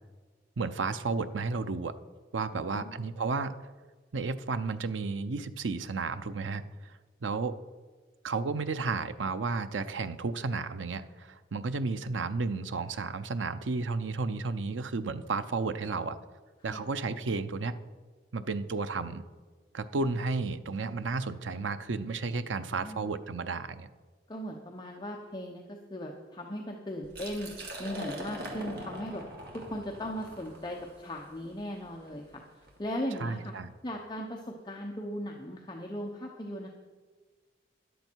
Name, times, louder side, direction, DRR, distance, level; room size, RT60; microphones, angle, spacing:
voice 1, 0.6-1.9 2.3-3.5 4.1-7.5 8.2-16.2 16.6-17.7 18.3-19.2 19.7-23.9 33.2-33.7, right 4 dB, 90° right, 12 dB, 0.6 m, -32 dB
voice 2, 2.5-2.9 16.7-16.9 22.4-23.1 24.3-29.2 29.5-32.4 32.8-33.5 33.8-36.7, equal, 25° left, 0 dB, 0.8 m, -38 dB
Liquid, 27.0-32.8, right 1 dB, 60° right, 2.2 m, -43 dB
13.5 x 10.5 x 4.5 m, 1.4 s
head